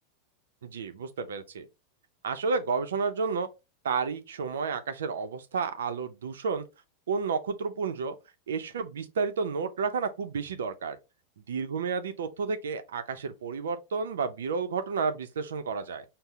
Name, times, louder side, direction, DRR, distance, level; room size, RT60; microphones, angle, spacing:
voice 1, 0.6-1.7 2.2-3.5 3.8-6.7 7.1-8.2 8.5-11.0 11.4-16.0, right 5 dB, 90° right, 0.5 m, -31 dB
5.5 x 2.0 x 2.3 m
hypercardioid pair, 110°, 0 cm